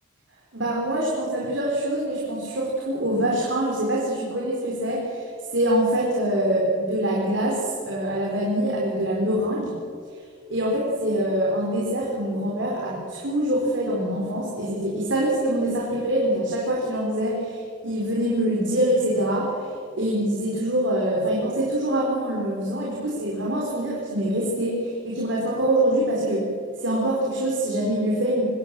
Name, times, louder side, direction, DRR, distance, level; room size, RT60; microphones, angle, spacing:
voice 1, 0.5-9.7 10.5-19.5 20.0-26.5 26.8-28.4, right 1 dB, 65° right, -4 dB, 4.2 m, -24 dB
24.0 x 17.0 x 7.5 m, 2.3 s
head